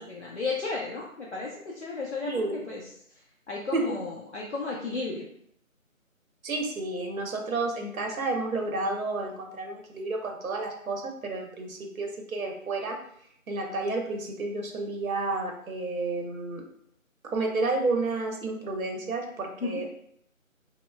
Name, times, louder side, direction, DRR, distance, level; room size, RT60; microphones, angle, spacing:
voice 1, 0.0-2.3 2.7-2.9 3.5-5.3 19.6-19.8, left 4 dB, 55° left, -4 dB, 0.5 m, -33 dB
voice 2, 6.4-13.0 13.5-16.6 17.2-19.9, right 3 dB, 75° right, 2 dB, 0.7 m, -31 dB
2.9 x 2.1 x 2.2 m, 0.68 s
figure-of-eight pair, 160°, 42 cm